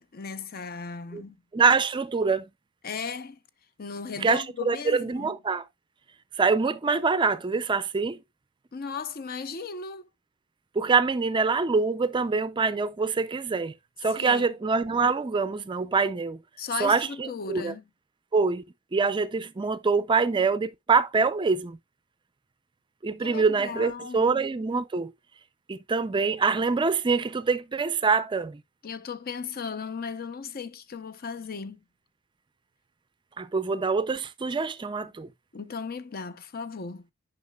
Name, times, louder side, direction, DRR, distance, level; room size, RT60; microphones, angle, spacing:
voice 1, 0.0-1.4 2.8-3.4 3.8-5.3 8.7-10.1 14.2-14.5 16.6-17.8 23.2-24.3 28.8-31.8 35.5-37.1, left 5 dB, 50° left, 0.6 m, -36 dB
voice 2, 1.5-2.4 4.2-5.6 6.4-8.2 10.8-13.7 14.0-16.4 16.8-17.7 18.3-18.6 18.9-21.8 23.0-25.1 25.7-28.6 33.4-35.3, right 4 dB, 25° right, 0.4 m, -25 dB
9.5 x 5.7 x 2.2 m
head